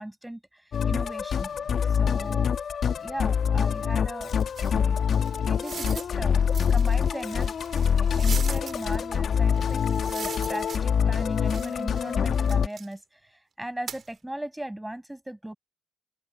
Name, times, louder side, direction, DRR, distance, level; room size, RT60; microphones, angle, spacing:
voice 1, 0.0-1.5 1.9-2.5 3.0-4.4 4.7-5.0 5.4-6.4 6.7-7.5 7.9-15.5, right 1 dB, 5° right, 7.4 m, -38 dB
Musical instrument, 0.7-12.7, left 7 dB, 55° left, 1.3 m, -25 dB
sound 1, 4.6-6.2 6.5-8.8 9.5-11.1 11.4-12.9 13.9-14.1, right 7 dB, 50° right, 2.9 m, -40 dB
open air
cardioid pair, 90°, 0 cm